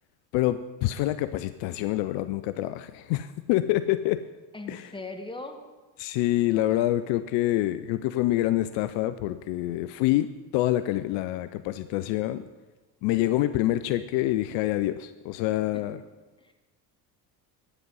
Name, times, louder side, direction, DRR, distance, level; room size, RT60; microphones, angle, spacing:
voice 1, 0.3-4.2 4.7-4.9 6.0-12.4 13.0-16.0, left 15 dB, 60° left, 13 dB, 0.6 m, -26 dB
voice 2, 4.5-5.6 15.7-15.8 16.4-16.5, left 2 dB, 10° left, 6 dB, 1.4 m, -39 dB
10.0 x 9.4 x 5.5 m, 1.2 s
hypercardioid pair, 75°, 50 cm